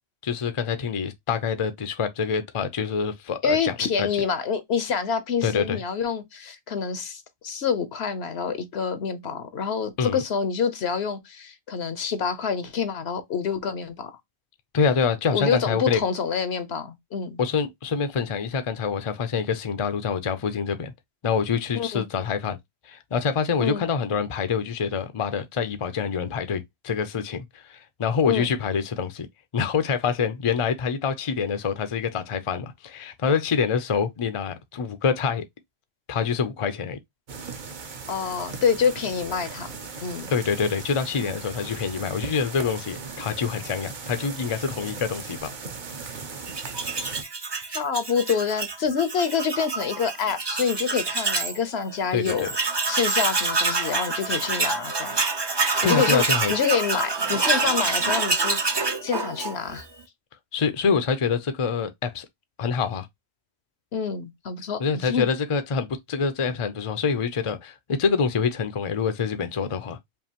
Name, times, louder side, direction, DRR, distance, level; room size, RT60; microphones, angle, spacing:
voice 1, 0.2-4.1 5.4-5.8 10.0-10.2 14.7-16.0 17.4-20.9 21.2-22.6 22.8-29.3 29.5-35.5 36.1-37.0 40.3-45.5 52.1-52.5 55.8-56.5 60.5-62.3 62.6-63.1 64.8-70.0, left 6 dB, 40° left, 0.5 m, -26 dB
voice 2, 3.4-14.2 15.3-17.4 21.7-22.1 23.6-23.8 28.2-28.5 38.1-40.3 41.2-41.3 47.7-52.5 52.9-55.2 55.8-59.8 63.9-65.3, left 6 dB, 75° left, 1.1 m, -27 dB
sound 1, 37.3-47.2, right 5 dB, 50° right, 0.9 m, -38 dB
Tools, 46.5-51.6 51.9-52.0 52.2-59.8, right 3 dB, 30° right, 0.6 m, -26 dB
5.3 x 2.5 x 2.9 m
omnidirectional pair, 1.1 m